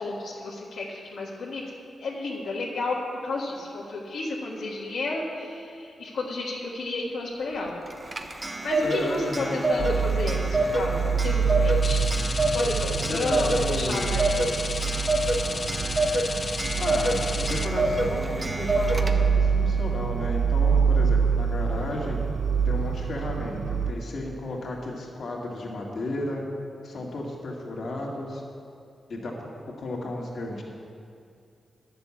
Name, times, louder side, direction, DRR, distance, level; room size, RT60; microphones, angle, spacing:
voice 1, 0.0-1.6 2.0-3.0 3.2-7.8 8.4-12.1 12.5-14.7, left 2 dB, 85° left, -6 dB, 1.7 m, -32 dB
Clock, 7.9-19.5, right 1 dB, 35° right, 1.0 m, -27 dB
voice 2, 8.8-9.5 13.1-14.2 16.7-22.2 22.6-26.4 26.8-28.4 29.1-29.4 29.8-30.6, left 2 dB, 65° left, -2 dB, 2.2 m, -33 dB
sound 1, 9.8-23.9, right 6 dB, 80° right, 0.4 m, -26 dB
sound 2, 11.8-17.7, left 4 dB, 45° left, 0.5 m, -34 dB
10.5 x 6.8 x 8.5 m, 2.4 s
cardioid pair, 65°, 0 cm